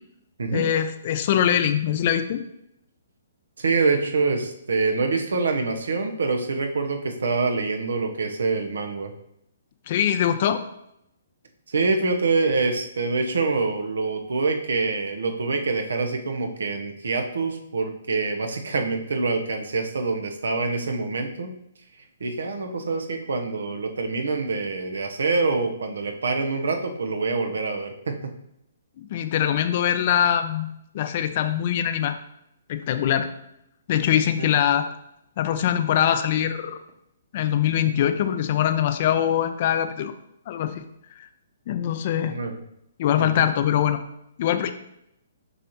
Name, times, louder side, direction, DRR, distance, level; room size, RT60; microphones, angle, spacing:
voice 1, 0.5-2.4 9.9-10.6 29.0-30.7 30.9-32.2 32.7-33.3 33.9-34.9 35.4-36.8 37.3-40.1 40.5-40.8 41.2-41.3 41.7-42.3 43.0-44.0 44.4-44.7, left 10 dB, 45° left, 9 dB, 0.5 m, -23 dB
voice 2, 3.6-9.1 11.7-21.5 22.2-28.3 34.4-34.5 42.3-42.6 43.2-43.5, right 3 dB, 75° right, 4 dB, 0.9 m, -25 dB
6.7 x 5.0 x 3.0 m, 0.79 s
hypercardioid pair, 135°, 0 cm